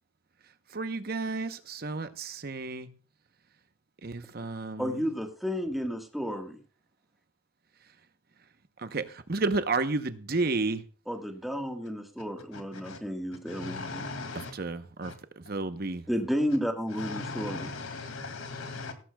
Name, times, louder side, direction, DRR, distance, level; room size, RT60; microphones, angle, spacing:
voice 1, 0.7-2.9 4.0-4.9 8.8-9.0 9.3-10.8 14.6-15.1 15.5-16.0, right 3 dB, 50° right, 0.9 m, -31 dB
voice 2, 4.8-6.6 11.1-14.0 16.1-17.7, equal, ahead, 1.5 m, -32 dB
voice 3, 12.5-13.0 13.5-14.5 15.0-15.2 16.9-18.9, left 3 dB, 85° left, 2.4 m, -38 dB
16.5 x 13.5 x 2.3 m
head